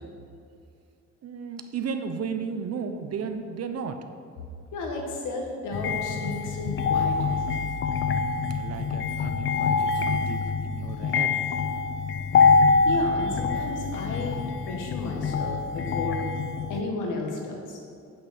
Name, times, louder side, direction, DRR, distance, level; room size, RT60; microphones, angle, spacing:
voice 1, 1.2-4.0 8.2-11.4, right 6 dB, 55° right, 8 dB, 0.8 m, -34 dB
voice 2, 4.7-7.5 12.8-16.2 16.7-17.8, left 2 dB, 90° left, 1 dB, 1.6 m, -33 dB
sound 1, 5.7-16.8, left 5 dB, 45° left, 0.5 m, -25 dB
8.4 x 8.3 x 4.3 m, 2.4 s
cardioid pair, 90°, 30 cm